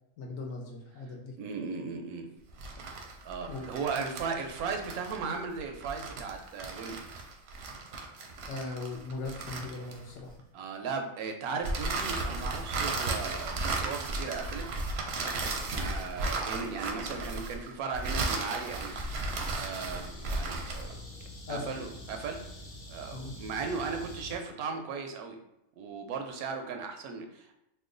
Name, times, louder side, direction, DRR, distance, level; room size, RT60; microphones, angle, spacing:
voice 1, 0.2-1.4 3.5-3.7 8.5-10.3 21.5-21.8 23.1-23.3, left 3 dB, 70° left, 0 dB, 1.0 m, -39 dB
voice 2, 1.4-2.3 2.9-7.1 10.5-14.6 15.7-21.0 21.5-22.5 22.9-25.4 25.8-27.5, right 5 dB, 90° right, 4 dB, 1.1 m, -37 dB
sound 1, 2.5-10.3 11.6-20.9, right 3 dB, 65° right, 0.7 m, -35 dB
sound 2, 18.6-24.4, left 1 dB, 40° left, 1.0 m, -46 dB
3.0 x 2.1 x 3.7 m, 0.85 s
omnidirectional pair, 1.5 m